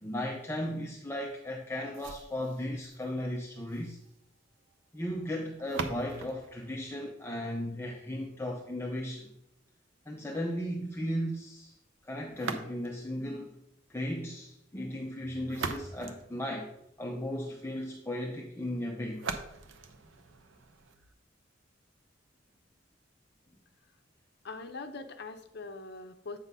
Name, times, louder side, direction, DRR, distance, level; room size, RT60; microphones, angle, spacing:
voice 1, 0.0-4.0 4.9-9.3 10.1-11.7 12.0-13.5 13.9-16.7 17.0-19.2, equal, 15° left, -1 dB, 0.6 m, -36 dB
sound 1, 1.9-7.9 12.3-13.2 15.2-17.1 19.1-21.1, right 4 dB, 75° right, 0.7 m, -42 dB
voice 2, 24.4-26.4, left 3 dB, 55° left, 7 dB, 0.7 m, -42 dB
8.1 x 3.8 x 5.5 m, 0.80 s
head